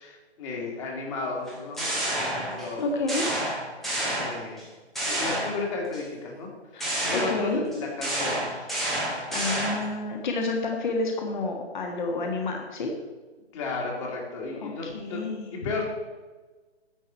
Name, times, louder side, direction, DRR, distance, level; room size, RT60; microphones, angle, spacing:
voice 1, 0.0-3.0 4.1-4.7 5.0-6.5 7.0-8.7 13.5-15.2 15.5-15.8, left 3 dB, 25° left, -1 dB, 2.1 m, -34 dB
sound 1, 1.5-2.8 3.1-4.6 5.0-6.0 6.8-10.0, right 1 dB, ahead, 0.6 m, -29 dB
voice 2, 2.8-3.3 6.7-7.6 9.3-12.9 14.6-15.5, left 3 dB, 45° left, 2 dB, 1.6 m, -29 dB
10.5 x 7.9 x 4.5 m, 1.3 s
figure-of-eight pair, 145°, 34 cm